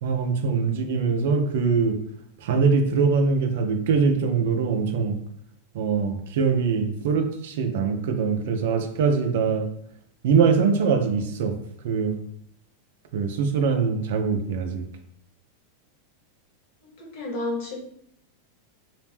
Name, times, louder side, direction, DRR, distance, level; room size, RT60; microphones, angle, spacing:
voice 1, 0.0-2.0 2.4-5.2 5.7-9.7 10.2-11.6 11.8-12.2 13.1-14.9, right 5 dB, 70° right, 6 dB, 0.4 m, -23 dB
voice 2, 17.0-17.8, left 2 dB, 60° left, 0 dB, 0.9 m, -30 dB
2.4 x 2.1 x 3.3 m, 0.67 s
hypercardioid pair, 110°, 0 cm